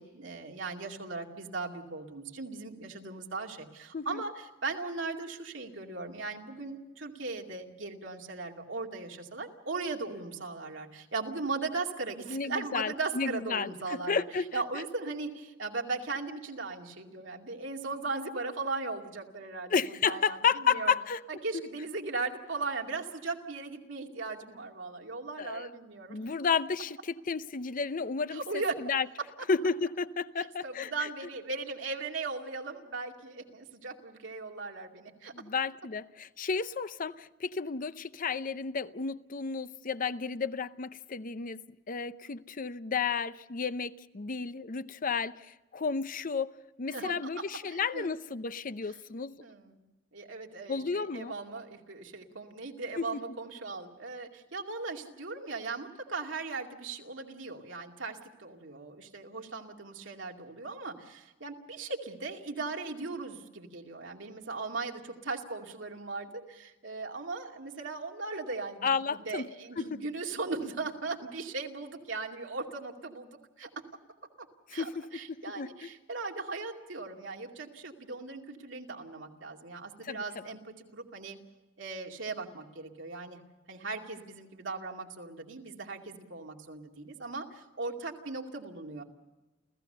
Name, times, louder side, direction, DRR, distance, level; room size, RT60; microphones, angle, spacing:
voice 1, 0.0-14.2 14.5-19.7 20.0-20.9 21.3-26.2 28.3-28.7 30.4-35.3 46.9-47.2 47.7-48.1 49.4-49.8 50.1-73.7 74.7-81.4 81.8-83.4 83.7-89.0, right 3 dB, 80° right, 2.4 m, -38 dB
voice 2, 12.3-14.6 19.7-21.2 25.4-25.7 26.1-29.1 29.5-31.1 35.3-41.6 41.9-49.4 50.7-51.3 53.0-53.1 68.8-69.5 69.8-70.0 74.7-75.1 75.6-75.9 80.0-80.2, left 5 dB, 45° left, 0.6 m, -32 dB
30.0 x 15.5 x 6.8 m
head